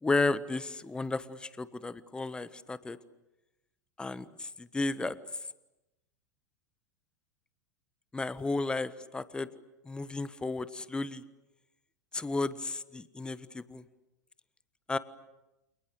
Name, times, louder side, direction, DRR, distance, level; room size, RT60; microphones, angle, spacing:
voice 1, 0.0-3.0 4.0-5.2 8.1-9.5 9.8-11.2 12.1-13.8 14.9-15.0, left 3 dB, 10° left, 15 dB, 1.4 m, -33 dB
29.5 x 28.5 x 6.9 m, 0.96 s
figure-of-eight pair, 90°, 10 cm